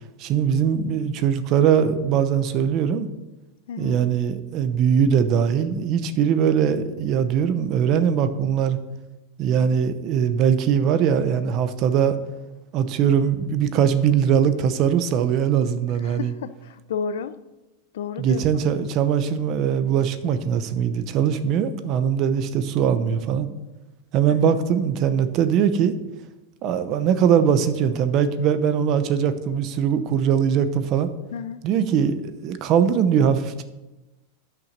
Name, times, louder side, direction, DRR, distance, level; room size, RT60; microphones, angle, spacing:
voice 1, 0.2-3.1 3.8-8.8 9.4-12.2 12.7-16.3 18.2-23.5 24.1-25.9 26.6-31.1 31.6-33.6, right 8 dB, 30° right, 11 dB, 0.7 m, -21 dB
voice 2, 3.7-4.0 16.0-17.4 17.9-18.6 24.3-24.5 31.3-31.6, left 6 dB, 85° left, 14 dB, 0.6 m, -32 dB
11.0 x 6.0 x 6.6 m, 1.1 s
supercardioid pair, 170°, 0 cm